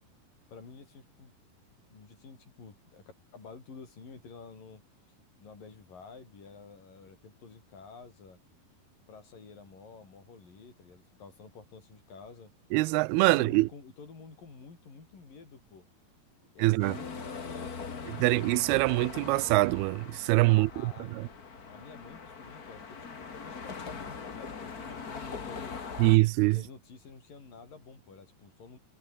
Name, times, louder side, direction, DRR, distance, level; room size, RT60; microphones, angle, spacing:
voice 1, 0.5-1.3 1.9-3.0 3.3-4.8 5.4-8.4 9.1-12.5 13.3-15.9 16.4-18.4 20.5-21.2 21.7-25.8 26.5-28.8, left 4 dB, 60° left, 8.0 m, -50 dB
voice 2, 12.7-13.7 16.6-17.0 18.1-21.3 26.0-26.6, right 22 dB, 90° right, 2.5 m, -24 dB
sound 1, 16.8-26.2, left 5 dB, 35° left, 1.8 m, -41 dB
omnidirectional pair, 4.4 m